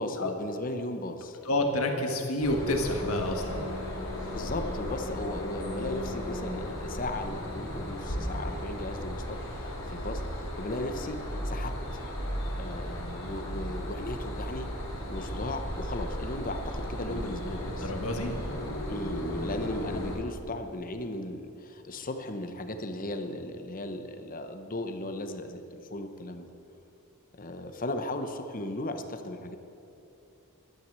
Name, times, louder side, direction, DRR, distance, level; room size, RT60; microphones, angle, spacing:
voice 1, 0.0-1.4 4.0-4.1 4.3-12.0 12.6-14.7 15.1-17.9 18.9-26.5 27.4-29.6, left 1 dB, 40° left, 7 dB, 0.9 m, -36 dB
voice 2, 1.4-3.6 17.1-17.3 17.7-18.4, left 1 dB, 75° left, 3 dB, 1.7 m, -29 dB
sound 1, 2.4-20.2, equal, 60° left, 3.1 m, -35 dB
12.0 x 9.5 x 7.5 m, 2.8 s
head